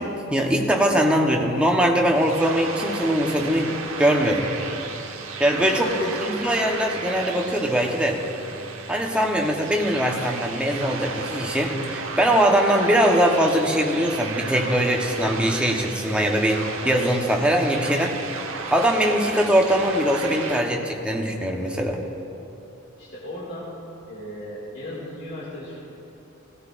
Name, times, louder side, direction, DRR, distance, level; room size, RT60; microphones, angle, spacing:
voice 1, 0.0-4.5 5.4-5.9 6.2-8.2 8.9-18.2 18.7-22.0, equal, 5° right, 0 dB, 0.9 m, -21 dB
sound 1, 2.0-20.6, right 4 dB, 80° right, 1.0 m, -34 dB
voice 2, 5.4-6.1 23.0-23.7 24.1-25.8, left 1 dB, 55° left, -8 dB, 2.1 m, -36 dB
17.0 x 13.5 x 2.5 m, 2.8 s
head